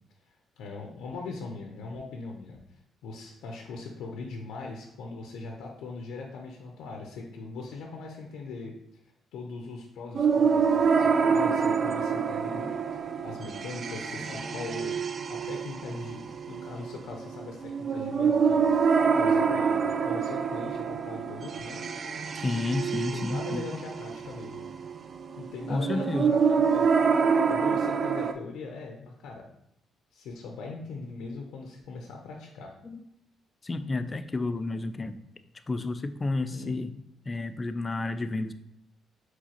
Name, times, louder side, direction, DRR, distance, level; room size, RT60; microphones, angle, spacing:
voice 1, 0.6-2.6 3.0-8.8 9.3-15.0 15.3-18.7 19.2-21.8 22.9-24.7 25.3-26.9 27.5-29.5 30.1-32.7 36.5-36.8, left 3 dB, 85° left, 1 dB, 0.6 m, -40 dB
sound 1, 10.1-28.3, right 6 dB, 45° right, 0.3 m, -26 dB
voice 2, 22.3-23.8 25.7-26.3 32.8-33.0 33.6-35.2 35.7-36.9 37.3-38.5, left 2 dB, 25° left, 11 dB, 0.3 m, -31 dB
4.8 x 3.8 x 2.9 m, 0.76 s
cardioid pair, 90°, 0 cm